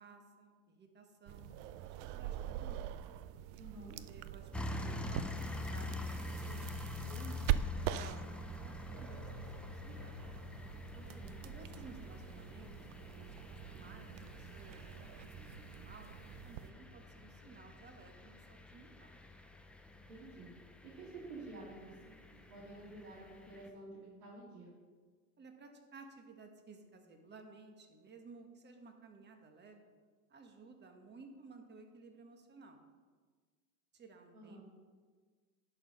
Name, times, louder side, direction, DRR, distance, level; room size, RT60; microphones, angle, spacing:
voice 1, 0.0-2.9 3.8-10.2 11.4-16.1 16.4-19.1 25.4-29.8 30.3-32.8 33.9-34.6, right 4 dB, 25° right, 4 dB, 1.4 m, -56 dB
sound 1, 1.3-16.7, right 11 dB, 55° right, 0.5 m, -43 dB
voice 2, 3.6-4.0 10.9-11.3 19.9-20.5 20.8-24.7 34.3-34.6, right 2 dB, 85° right, -8 dB, 2.8 m, -51 dB
sound 2, 4.5-23.7, left 2 dB, 5° left, 0.4 m, -46 dB
10.5 x 4.9 x 5.5 m, 1.5 s
hypercardioid pair, 105°, 44 cm